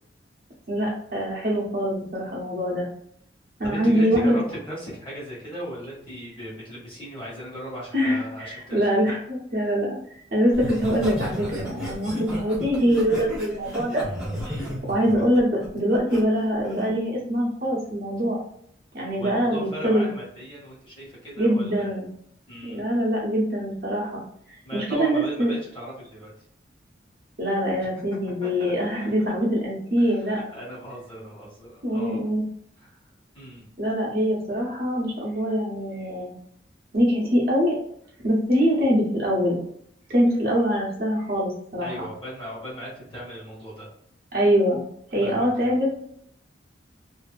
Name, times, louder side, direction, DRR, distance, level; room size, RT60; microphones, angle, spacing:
voice 1, 0.7-2.9 3.6-4.4 7.9-14.0 14.9-18.4 18.9-20.1 21.4-22.1 22.6-24.2 24.7-25.5 27.4-30.4 31.8-32.4 33.8-36.3 36.9-37.8 38.2-39.6 40.1-41.9 44.3-44.8 45.1-46.0, equal, 50° right, -4 dB, 0.9 m, -23 dB
voice 2, 3.6-9.1 14.4-14.7 19.2-21.9 22.5-22.8 24.6-26.3 27.8-28.7 29.0-29.1 30.0-32.2 32.8-33.0 33.3-33.7 41.8-43.9 45.2-45.8, equal, 25° left, -7 dB, 1.3 m, -38 dB
Laughter, 10.5-16.2 16.6-16.9, equal, 5° right, 0.9 m, -33 dB
2.8 x 2.6 x 2.4 m, 0.69 s
head